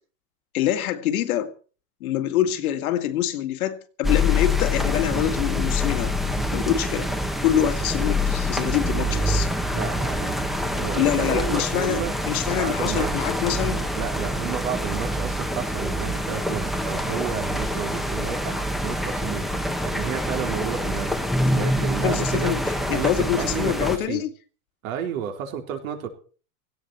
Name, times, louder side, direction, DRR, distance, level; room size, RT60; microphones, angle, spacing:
voice 1, 0.5-1.5 2.0-6.2 6.5-7.1 7.4-9.5 10.9-13.8 22.0-24.3, left 11 dB, 80° left, 2.2 m, -25 dB
sound 1, 4.0-24.0, left 1 dB, ahead, 1.2 m, -26 dB
voice 2, 9.7-10.3 10.7-12.1 12.5-13.3 13.9-18.6 18.8-22.6 22.9-24.2 24.8-26.1, right 9 dB, 70° right, 4.2 m, -32 dB
17.0 x 16.0 x 4.6 m
supercardioid pair, 150°, 42 cm